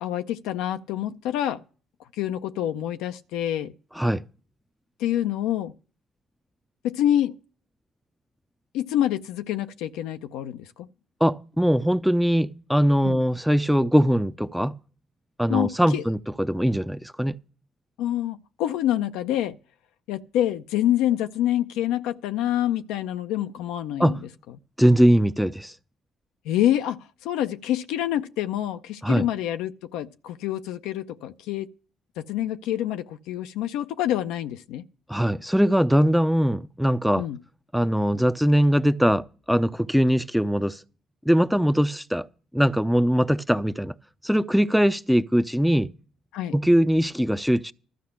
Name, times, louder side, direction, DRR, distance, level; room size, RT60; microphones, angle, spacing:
voice 1, 0.0-1.6 2.2-3.7 5.0-5.7 6.8-7.3 8.7-10.9 13.0-13.2 15.5-16.0 18.0-19.6 20.1-24.2 26.5-31.7 32.2-34.8 37.1-37.4 46.3-46.5, left 12 dB, 80° left, 0.5 m, -27 dB
voice 2, 11.2-14.8 15.4-17.4 24.0-24.2 24.8-25.7 29.0-29.3 35.1-37.3 37.7-40.8 41.3-42.3 42.5-43.9 44.2-45.9 46.5-47.7, equal, ahead, 0.6 m, -21 dB
13.0 x 5.6 x 8.5 m
hypercardioid pair, 55°, 0 cm